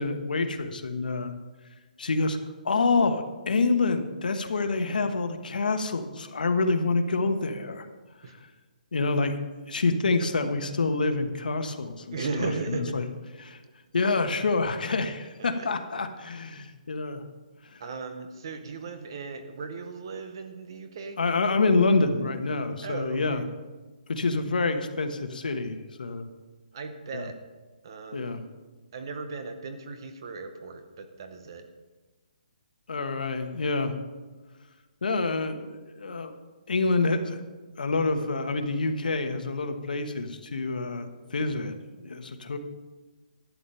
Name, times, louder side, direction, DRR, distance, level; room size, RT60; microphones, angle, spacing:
voice 1, 0.0-1.3 2.0-2.4 2.6-7.9 8.2-8.5 8.9-9.4 9.7-13.1 13.4-13.6 13.9-17.2 17.6-17.8 21.2-23.4 24.1-26.3 27.1-27.3 28.1-28.4 32.9-34.0 35.0-36.3 36.7-37.4 37.8-42.6, left 3 dB, 75° left, 7 dB, 1.3 m, -27 dB
voice 2, 12.1-13.0 15.4-15.7 17.8-21.2 22.8-23.4 26.7-27.4 27.8-28.3 28.9-31.6, right 4 dB, 30° right, 8 dB, 0.8 m, -36 dB
12.5 x 8.4 x 5.6 m, 1.3 s
hypercardioid pair, 180°, 5 cm